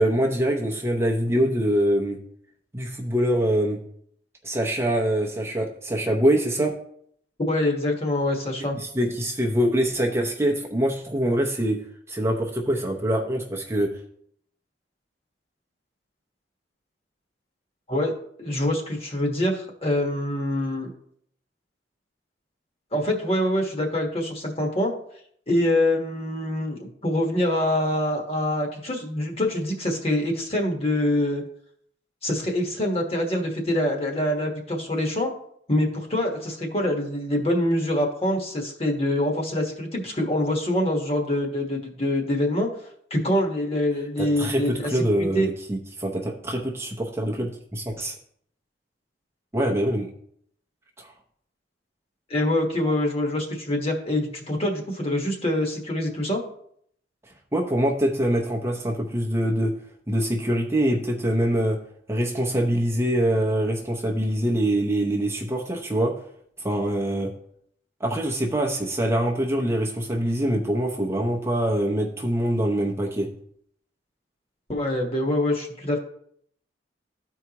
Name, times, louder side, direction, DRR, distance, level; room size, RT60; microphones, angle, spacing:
voice 1, 0.0-2.2 2.7-3.8 4.4-6.7 8.7-13.9 44.2-48.1 49.5-50.1 51.0-51.1 52.8-52.9 57.5-59.7 60.1-61.8 62.1-66.1 66.6-67.3 68.0-73.3, right 1 dB, 15° right, 0 dB, 0.7 m, -24 dB
voice 2, 7.5-8.8 17.9-18.1 18.4-20.9 22.9-24.9 25.5-31.4 32.2-35.3 35.7-42.7 43.1-45.0 45.3-45.5 52.3-56.4 74.7-76.0, left 1 dB, 35° left, 1 dB, 1.4 m, -25 dB
13.5 x 4.6 x 3.0 m, 0.67 s
head